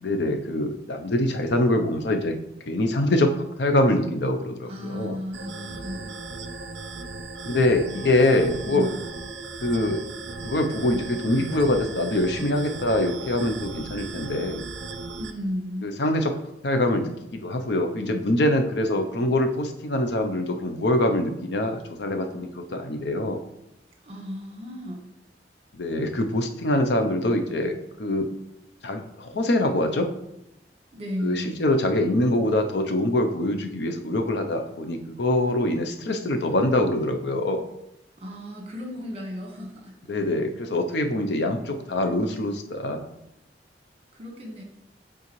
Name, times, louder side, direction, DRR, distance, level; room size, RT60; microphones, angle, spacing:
voice 1, 0.0-2.4 2.6-5.2 7.4-8.9 9.6-10.0 10.4-14.6 15.8-16.4 16.6-17.1 17.4-23.4 25.8-27.7 28.0-28.3 28.8-30.1 31.2-37.6 40.1-43.0, left 1 dB, 65° left, 6 dB, 0.6 m, -24 dB
voice 2, 4.7-6.2 8.2-8.9 15.1-15.9 24.0-25.0 30.9-31.6 38.2-40.1 44.1-44.6, equal, 35° right, 1 dB, 1.3 m, -34 dB
sound 1, 5.3-15.3, right 3 dB, 75° right, 0.5 m, -37 dB
8.4 x 3.8 x 3.1 m, 0.83 s
head